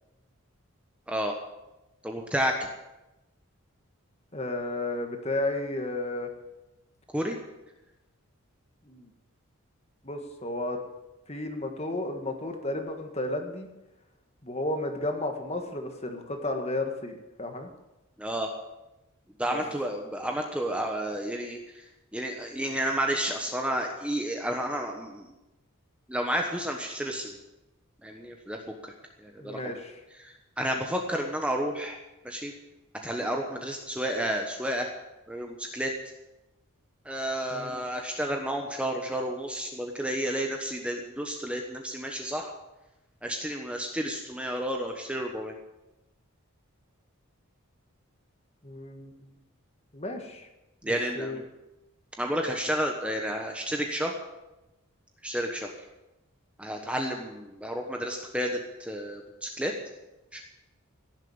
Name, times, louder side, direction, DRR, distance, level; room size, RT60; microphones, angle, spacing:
voice 1, 2.0-2.5 7.1-7.4 18.2-18.5 19.4-21.8 22.1-25.3 26.1-27.3 28.0-28.9 29.2-29.6 30.2-32.0 32.2-32.5 33.0-34.9 35.3-35.9 37.0-42.5 43.2-45.5 50.8-51.4 52.2-54.1 55.2-55.7 56.6-59.7 60.3-60.4, equal, 5° right, 2 dB, 1.1 m, -31 dB
voice 2, 4.3-6.3 8.8-9.1 10.0-10.8 11.3-13.7 14.4-17.7 19.5-19.6 29.4-30.0 37.5-37.7 48.6-49.1 49.9-50.5 50.8-51.4, left 2 dB, 30° left, 5 dB, 1.7 m, -33 dB
16.0 x 7.4 x 8.9 m, 0.98 s
head